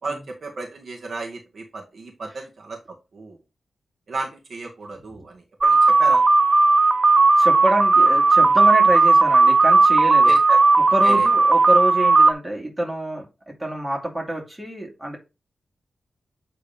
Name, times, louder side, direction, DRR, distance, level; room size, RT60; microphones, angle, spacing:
voice 1, 0.0-2.8 3.1-3.4 4.1-6.2 10.2-10.6 11.0-11.3, right 3 dB, 65° right, 0 dB, 1.8 m, -34 dB
sound 1, 5.6-12.3, right 3 dB, 40° right, 0.5 m, -15 dB
voice 2, 7.4-10.3 10.9-15.2, right 1 dB, 15° right, -1 dB, 2.7 m, -27 dB
8.7 x 3.7 x 3.6 m, 0.26 s
cardioid pair, 75°, 0 cm